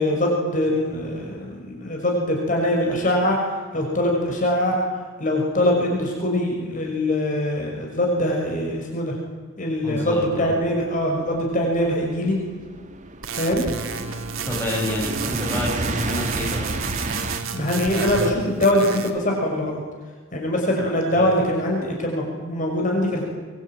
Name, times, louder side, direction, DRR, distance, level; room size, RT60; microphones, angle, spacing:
voice 1, 0.0-3.4 3.7-4.8 5.2-9.1 9.6-12.4 13.4-13.7 17.5-19.8 20.3-23.2, left 1 dB, 40° left, 0 dB, 6.1 m, -23 dB
voice 2, 9.8-10.5 14.4-16.7 21.1-21.3, left 1 dB, 10° left, -2 dB, 7.8 m, -29 dB
sound 1, 10.4-17.4, right 2 dB, 40° right, 2.0 m, -31 dB
sound 2, 13.2-18.3 18.6-19.2, right 5 dB, 85° right, 2.3 m, -31 dB
24.5 x 24.0 x 9.3 m, 1.5 s
head